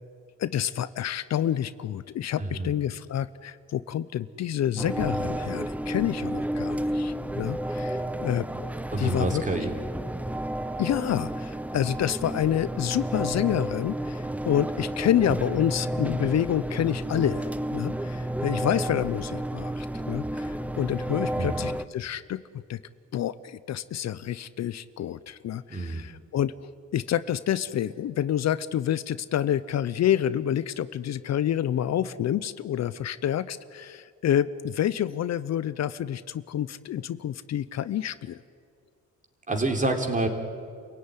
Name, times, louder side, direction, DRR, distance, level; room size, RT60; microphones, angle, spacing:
voice 1, 0.4-9.6 10.8-22.4 22.7-22.8 23.1-26.5 26.9-38.4, left 10 dB, 60° left, 15 dB, 0.8 m, -28 dB
voice 2, 2.4-2.7 8.9-9.7 21.4-21.7 25.7-26.1 39.5-40.3, right 2 dB, 25° right, 3 dB, 3.8 m, -28 dB
sound 1, 4.8-21.8, right 1 dB, 5° right, 0.7 m, -31 dB
28.5 x 16.5 x 9.9 m, 2.2 s
cardioid pair, 90°, 30 cm